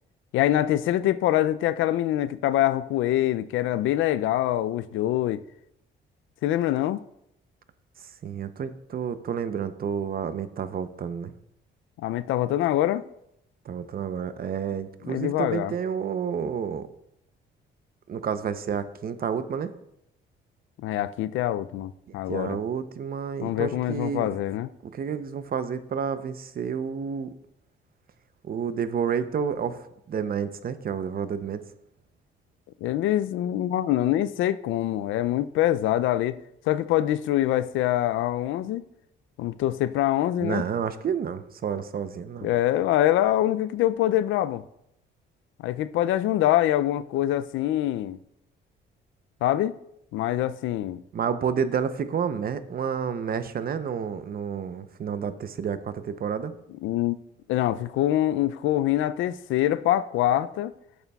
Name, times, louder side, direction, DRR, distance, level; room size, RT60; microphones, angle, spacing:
voice 1, 0.3-5.4 6.4-7.0 12.0-13.0 15.1-15.7 20.8-22.6 23.4-24.7 32.8-36.4 36.7-38.8 39.4-40.7 42.4-44.6 45.6-48.2 49.4-49.7 50.1-51.0 56.8-57.2 57.5-60.7, left 13 dB, 85° left, 0.4 m, -24 dB
voice 2, 8.2-11.3 13.7-16.9 18.1-19.7 22.3-24.3 24.9-27.3 28.4-31.6 40.4-42.5 51.1-56.5, right 7 dB, 50° right, 0.7 m, -30 dB
11.0 x 8.1 x 2.3 m
cardioid pair, 90°, 20 cm